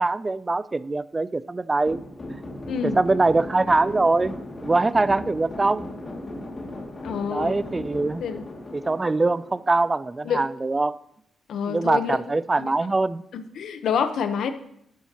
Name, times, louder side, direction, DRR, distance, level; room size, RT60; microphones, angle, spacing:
voice 1, 0.0-2.0 2.8-4.4 4.6-5.9 7.3-8.2 8.7-11.0 11.7-13.2, right 3 dB, 25° right, 0.3 m, -23 dB
sound 1, 1.9-10.2, left 2 dB, 35° left, 2.2 m, -37 dB
voice 2, 2.7-3.0 7.0-7.6 8.2-8.5 10.2-10.4 11.5-12.2 12.6-12.7 13.3-14.5, left 7 dB, 80° left, 0.9 m, -27 dB
12.0 x 10.0 x 2.9 m
cardioid pair, 80°, 0 cm